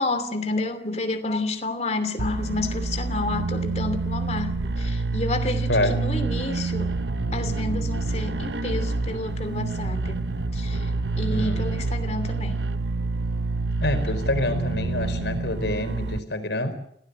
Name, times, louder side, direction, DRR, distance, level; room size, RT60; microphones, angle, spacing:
voice 1, 0.0-6.9 7.3-10.9 11.2-12.7, left 2 dB, 40° left, 8 dB, 2.8 m, -30 dB
sound 1, 2.2-16.2, right 3 dB, 90° right, 1.2 m, -27 dB
voice 2, 11.3-11.6 13.8-16.8, left 1 dB, 80° left, 8 dB, 4.5 m, -26 dB
27.0 x 17.5 x 8.0 m, 0.72 s
head